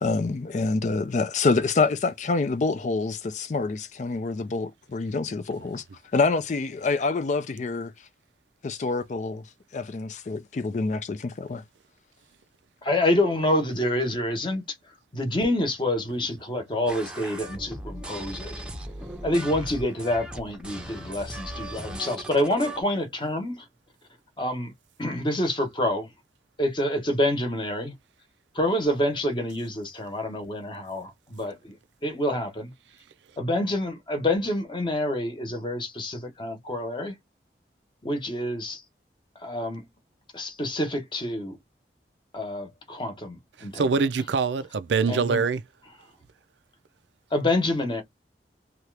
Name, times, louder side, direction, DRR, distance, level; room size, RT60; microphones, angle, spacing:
voice 1, 0.0-5.8 6.1-7.9 8.6-9.4 9.7-11.6, left 3 dB, 40° left, 0.4 m, -26 dB
voice 2, 12.8-14.8 15.1-18.6 19.2-23.7 24.4-24.7 25.0-26.1 26.6-27.9 28.5-31.8 32.0-32.7 33.4-37.2 38.0-38.8 39.4-39.8 40.3-41.6 42.3-43.9 45.1-45.4 47.3-48.0, left 1 dB, 25° left, 0.9 m, -27 dB
sound 1, 16.9-22.8, right 1 dB, 5° right, 0.7 m, -38 dB
voice 3, 43.7-45.6, right 5 dB, 85° right, 0.5 m, -24 dB
2.8 x 2.4 x 3.2 m
head